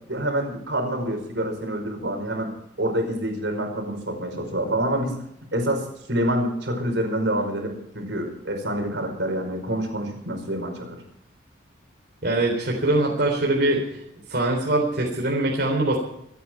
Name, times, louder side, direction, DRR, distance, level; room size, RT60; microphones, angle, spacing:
voice 1, 0.1-2.5 2.8-5.2 5.5-11.0, right 1 dB, 80° right, 3 dB, 5.2 m, -27 dB
voice 2, 12.2-13.8 14.3-16.0, right 2 dB, 60° right, -1 dB, 3.7 m, -22 dB
26.5 x 9.5 x 4.7 m, 0.78 s
head